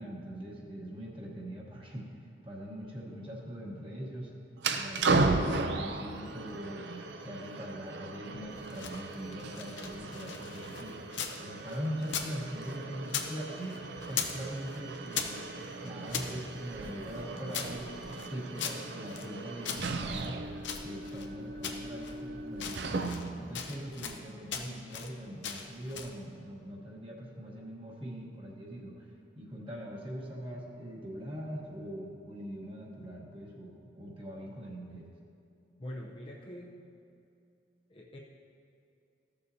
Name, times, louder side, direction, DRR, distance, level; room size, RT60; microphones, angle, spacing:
voice 1, 0.0-2.1 2.4-4.3 4.7-6.9 7.2-11.0 11.4-13.8 14.1-15.5 15.8-17.9 18.3-20.4 20.8-23.1 23.4-29.1 29.3-35.1, equal, 30° right, -3 dB, 1.1 m, -42 dB
sound 1, 4.6-23.5, right 3 dB, 65° right, 0.5 m, -36 dB
sound 2, 8.5-11.4 11.7-13.3 13.6-14.4 14.7-16.3 16.8-19.3 19.6-21.3 21.6-22.2 22.5-23.3 23.5-24.2 24.5-25.1 25.4-26.2, left 7 dB, 75° left, 0.7 m, -39 dB
voice 2, 35.8-36.9 37.9-38.2, equal, 30° left, -2 dB, 0.6 m, -44 dB
14.0 x 6.8 x 2.7 m, 2.6 s
head